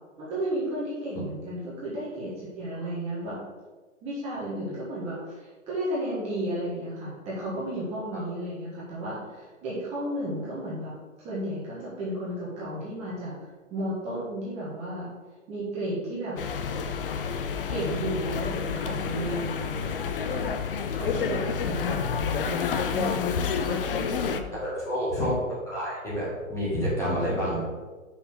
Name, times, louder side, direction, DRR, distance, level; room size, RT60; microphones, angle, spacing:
voice 1, 0.2-3.4 4.0-10.9 11.2-13.3 13.7-15.1 15.5-16.4 17.6-20.5 20.9-24.5 27.3-27.4, right 1 dB, 15° right, -8 dB, 1.5 m, -33 dB
sound 1, 16.4-24.4, left 6 dB, 45° left, 0.5 m, -29 dB
voice 2, 24.5-27.7, equal, 5° left, -8 dB, 1.7 m, -29 dB
5.8 x 4.0 x 6.1 m, 1.3 s
hypercardioid pair, 160°, 39 cm